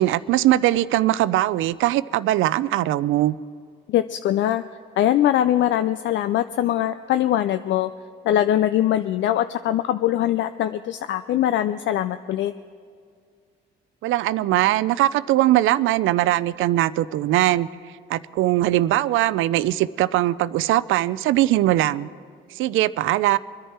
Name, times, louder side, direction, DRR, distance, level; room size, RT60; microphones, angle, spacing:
voice 1, 0.0-3.4 14.0-17.7 18.1-22.1 22.6-23.4, right 14 dB, 85° right, 17 dB, 0.4 m, -20 dB
voice 2, 3.9-4.6 5.0-7.9 8.2-12.5, left 12 dB, 70° left, 11 dB, 0.4 m, -22 dB
24.0 x 10.5 x 4.3 m, 2.2 s
cardioid pair, 90°, 20 cm